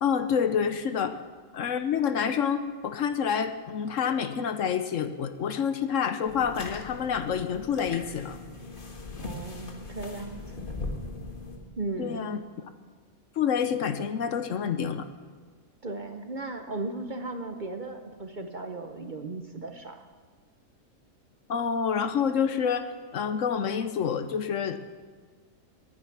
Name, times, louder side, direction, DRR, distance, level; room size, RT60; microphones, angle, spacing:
voice 1, 0.0-1.2 1.5-8.4 12.0-12.4 13.4-15.1 21.5-24.8, left 7 dB, 65° left, 10 dB, 1.1 m, -28 dB
sound 1, 6.3-11.6, left 2 dB, 35° left, 1.7 m, -39 dB
voice 2, 9.2-10.6 11.8-12.3 15.8-20.0, right 2 dB, 40° right, 6 dB, 0.8 m, -36 dB
18.5 x 10.5 x 5.9 m, 1.6 s
omnidirectional pair, 1.5 m